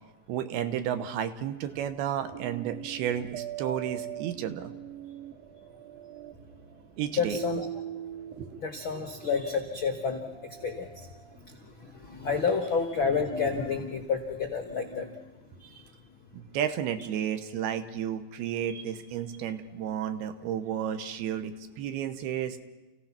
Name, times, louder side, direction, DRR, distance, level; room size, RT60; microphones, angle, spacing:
voice 1, 0.3-4.7 7.0-7.4 8.4-8.5 16.3-22.6, right 9 dB, 80° right, 10 dB, 2.9 m, -32 dB
sound 1, 1.7-12.1, right 11 dB, 65° right, 2.6 m, -42 dB
voice 2, 7.1-7.7 8.6-11.1 11.6-15.2 15.5-15.8 18.7-18.8, left 5 dB, 90° left, 4 dB, 1.1 m, -30 dB
29.5 x 16.0 x 5.9 m, 1.2 s
omnidirectional pair, 4.6 m